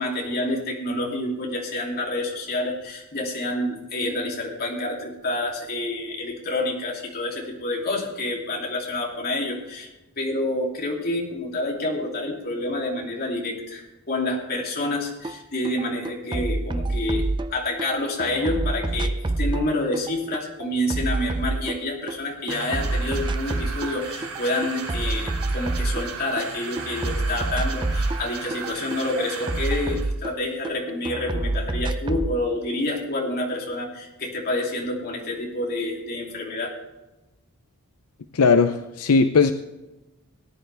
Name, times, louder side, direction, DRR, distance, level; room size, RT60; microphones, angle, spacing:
voice 1, 0.0-9.9 10.2-36.7, left 1 dB, 45° left, -1 dB, 2.9 m, -28 dB
sound 1, 15.2-15.4 15.6-17.9 18.2-22.2 22.5-24.0 24.2-26.5 26.8-30.7 31.1-32.3, right 2 dB, 20° right, 0.4 m, -27 dB
sound 2, 22.5-30.1, right 5 dB, 85° right, 2.6 m, -36 dB
voice 2, 38.3-39.5, left 4 dB, 80° left, 9 dB, 0.6 m, -18 dB
18.0 x 10.5 x 3.4 m, 1.0 s
head